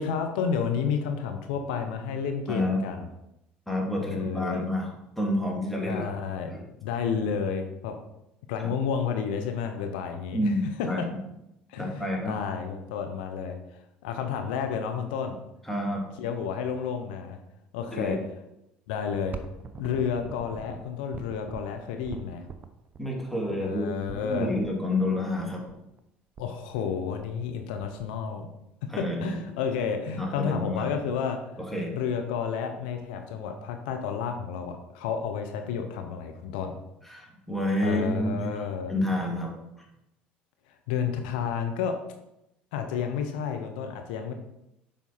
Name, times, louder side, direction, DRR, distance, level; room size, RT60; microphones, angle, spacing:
voice 1, 0.0-3.1 4.0-4.7 5.9-6.5 6.8-7.9 8.5-10.5 11.0-11.1 11.7-13.6 14.0-15.4 16.2-17.4 17.7-18.2 18.9-19.3 19.8-22.4 23.6-24.5 26.4-28.5 28.8-31.4 31.9-36.7 37.8-38.9 40.9-41.9 42.7-44.3, left 7 dB, 75° left, 5 dB, 0.8 m, -31 dB
voice 2, 2.5-2.8 3.7-6.0 6.4-6.6 8.6-8.7 10.3-11.0 11.8-12.4 15.6-16.0 17.9-18.2 23.0-25.7 28.9-29.4 30.2-30.9 31.6-32.0 37.0-38.5 38.9-39.5 39.8-39.9, left 1 dB, 5° left, -1 dB, 2.5 m, -29 dB
sound 1, 19.1-24.7 25.6-25.7 26.0-26.1 26.3-26.9 27.2-27.6 27.8-28.7 29.3-29.4 29.8-30.1 30.4-30.5 30.7-31.3 31.8-32.6 33.0-33.1 34.0-34.1, right 5 dB, 35° right, 0.8 m, -44 dB
7.5 x 5.2 x 4.4 m, 0.85 s
hypercardioid pair, 70°, 5 cm